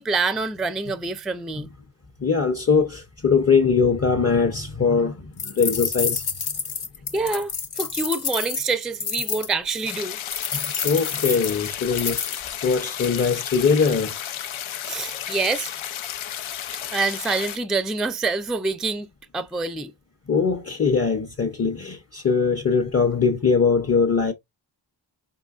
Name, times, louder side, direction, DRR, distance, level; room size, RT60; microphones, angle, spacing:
voice 1, 0.0-1.7 7.1-7.5 7.8-10.2 14.9-15.7 16.9-19.1 19.3-19.9, right 3 dB, ahead, 0.3 m, -26 dB
voice 2, 2.2-6.3 10.5-14.2 20.3-24.3, left 5 dB, 30° left, 0.7 m, -21 dB
sound 1, 5.4-9.5 10.3-12.4, left 6 dB, 55° left, 0.9 m, -29 dB
sound 2, 9.8-17.6, left 10 dB, 85° left, 0.6 m, -33 dB
4.6 x 3.7 x 2.3 m
cardioid pair, 60°, 47 cm